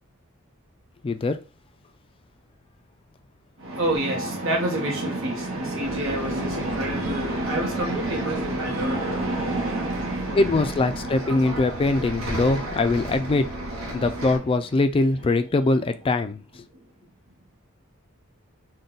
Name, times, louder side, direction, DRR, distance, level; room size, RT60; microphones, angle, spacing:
voice 1, 1.0-1.4 10.3-13.5 13.9-16.6, left 2 dB, 25° left, 0.3 m, -22 dB
voice 2, 3.6-13.3 13.9-14.1 16.7-16.8, right 1 dB, 70° right, 1.1 m, -28 dB
Bus, 5.8-14.4, equal, 90° right, 0.8 m, -34 dB
3.7 x 2.2 x 3.9 m
head